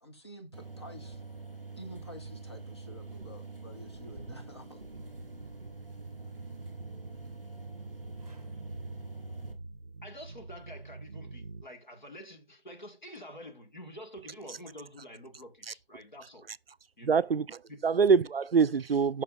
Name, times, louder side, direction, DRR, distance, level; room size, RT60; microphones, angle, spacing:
voice 1, 0.0-1.5 1.8-4.8, equal, 30° left, 1.0 m, -49 dB
sound 1, 0.5-9.5, right 3 dB, 5° left, 1.2 m, -45 dB
sound 2, 4.9-11.6, right 2 dB, 40° right, 0.7 m, -46 dB
voice 2, 10.0-16.5 17.0-17.2 17.7-17.8, equal, 50° left, 1.7 m, -47 dB
voice 3, 17.0-19.2, right 5 dB, 80° right, 0.5 m, -25 dB
12.5 x 5.9 x 2.4 m
figure-of-eight pair, 165°, 29 cm